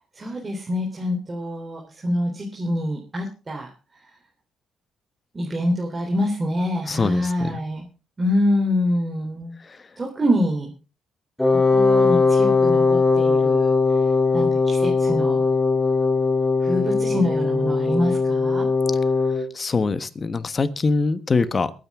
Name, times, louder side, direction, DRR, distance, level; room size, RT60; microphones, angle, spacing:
voice 1, 0.2-3.7 5.3-7.9 8.2-9.5 10.0-10.7 11.5-13.7 14.0-14.1 14.3-15.4 16.6-18.7, left 1 dB, 25° right, -1 dB, 3.6 m, -25 dB
voice 2, 6.9-7.6 19.5-21.8, left 4 dB, 35° left, 12 dB, 1.3 m, -23 dB
Wind instrument woodwind instrument, 11.4-19.5, left 4 dB, 5° left, 2.9 m, -19 dB
22.0 x 9.3 x 3.7 m, 0.34 s
cardioid pair, 90°, 0 cm